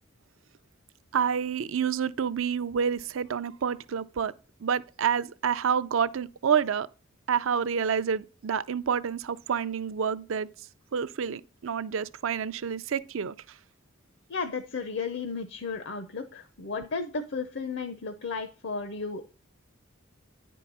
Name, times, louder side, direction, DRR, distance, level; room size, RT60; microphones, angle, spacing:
voice 1, 1.1-4.3 4.6-6.9 7.3-10.5 10.9-13.3, right 7 dB, 70° right, 0.5 m, -28 dB
voice 2, 14.3-19.2, left 4 dB, 60° left, 0.7 m, -34 dB
10.0 x 4.6 x 5.4 m
head